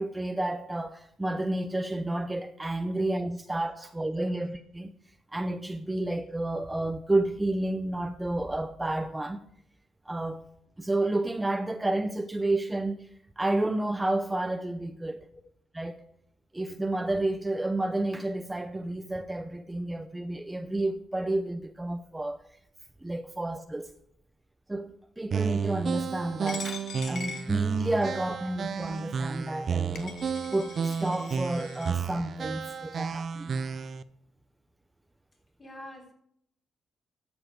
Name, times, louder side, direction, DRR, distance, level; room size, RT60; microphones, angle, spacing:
voice 1, 0.0-4.9 5.3-9.4 10.1-10.4 10.8-13.1 13.4-15.3 15.7-16.0 16.5-22.4 23.0-24.0 24.7-30.2 30.5-33.5, right 2 dB, 10° right, 0.7 m, -30 dB
sound 1, 25.3-34.0, right 6 dB, 50° right, 0.6 m, -32 dB
Coin (dropping), 26.5-28.2 28.9-29.0 29.7-29.8 30.0-31.9, left 5 dB, 60° left, 1.5 m, -42 dB
voice 2, 35.6-36.1, left 1 dB, 30° left, 3.5 m, -45 dB
13.0 x 7.2 x 4.7 m
cardioid pair, 100°, 0 cm